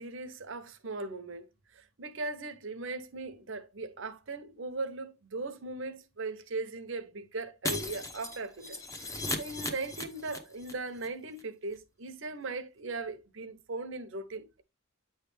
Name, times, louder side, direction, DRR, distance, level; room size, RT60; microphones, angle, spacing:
voice 1, 0.0-1.5 1.7-8.8 9.0-14.6, right 3 dB, 60° right, 0.8 m, -39 dB
Shatter, 7.6-10.7 11.0-11.1 11.4-11.5, left 2 dB, 15° left, 0.8 m, -37 dB
9.2 x 3.2 x 3.3 m
head